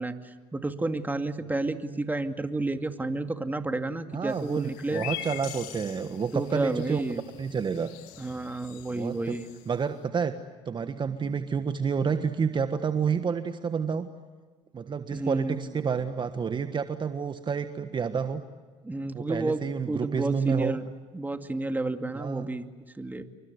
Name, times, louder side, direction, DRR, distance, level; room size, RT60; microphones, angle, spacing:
voice 1, 0.0-5.0 6.3-7.2 8.2-9.5 15.1-15.6 18.8-20.8 21.1-22.7 23.0-23.2, right 2 dB, 15° right, 7 dB, 2.3 m, -31 dB
voice 2, 4.1-7.0 7.4-7.9 8.9-9.4 9.7-10.3 10.6-14.1 14.7-18.4 19.1-20.8 22.1-22.6, right 6 dB, 35° right, 9 dB, 1.5 m, -29 dB
sound 1, 4.3-9.8, left 13 dB, 75° left, 2.3 m, -43 dB
29.0 x 24.0 x 8.2 m, 1.5 s
hypercardioid pair, 75°, 14 cm